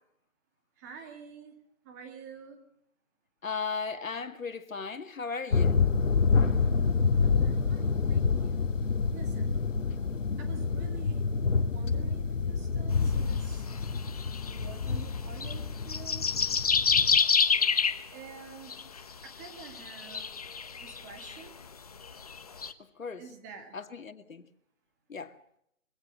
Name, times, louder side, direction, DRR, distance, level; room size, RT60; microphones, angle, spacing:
voice 1, 0.8-1.5 1.8-2.6 7.2-8.6 9.1-9.6 10.4-11.2 11.6-13.7 14.4-16.2 18.1-18.8 19.2-20.3 20.7-21.6 23.2-23.8, right 6 dB, 15° right, 2.2 m, -48 dB
voice 2, 3.4-5.8 23.0-23.2 23.7-24.4 25.1-25.4, left 5 dB, 90° left, 2.3 m, -36 dB
sound 1, 5.5-17.2, left 5 dB, 70° left, 2.2 m, -28 dB
sound 2, 12.9-15.5 15.8-18.0 18.7-19.0 19.3-21.5 22.0-22.7, left 6 dB, 30° left, 0.9 m, -28 dB
23.5 x 17.5 x 7.6 m
hypercardioid pair, 170°, 39 cm